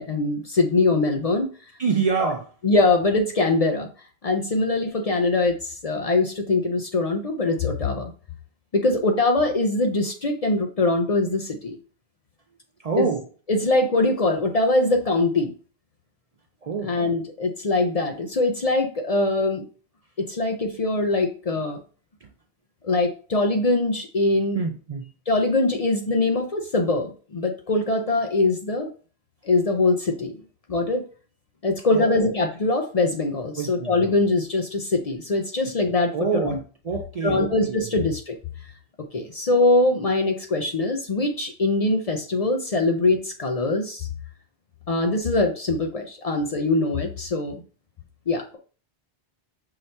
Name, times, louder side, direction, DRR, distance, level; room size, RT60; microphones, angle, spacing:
voice 1, 0.0-1.5 2.2-2.3 2.6-3.9 4.2-8.1 8.7-11.8 13.0-13.1 13.5-15.5 16.8-19.7 20.2-21.8 22.8-24.6 25.3-28.9 29.4-30.4 30.7-31.0 31.6-36.6 37.2-38.4 39.1-44.1 44.9-47.6 48.3-48.6, left 2 dB, 45° left, 0.6 m, -22 dB
voice 2, 1.8-2.5 12.8-13.2 16.6-17.0 22.2-22.3 24.5-25.1 31.9-32.3 33.6-34.1 36.1-37.9, right 5 dB, 50° right, 0.5 m, -27 dB
5.7 x 2.8 x 3.2 m
omnidirectional pair, 1.0 m